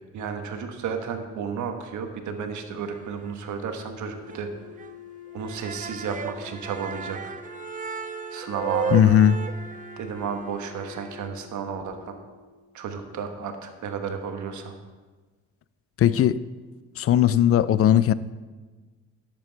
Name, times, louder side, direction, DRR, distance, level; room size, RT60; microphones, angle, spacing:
voice 1, 0.1-4.5 5.3-7.3 8.3-9.2 10.0-12.1 12.7-14.7, right 6 dB, 75° right, 1.3 m, -32 dB
sound 1, 2.8-3.5 3.8-3.9 4.3-4.4 4.8-4.9 5.3-11.3, right 6 dB, 25° right, 0.4 m, -35 dB
Wind instrument woodwind instrument, 3.6-12.7, left 4 dB, 65° left, 1.6 m, -45 dB
voice 2, 8.9-9.4 16.0-16.4 17.0-18.1, left 10 dB, 50° left, 0.5 m, -18 dB
11.0 x 7.6 x 4.6 m
cardioid pair, 90°, 30 cm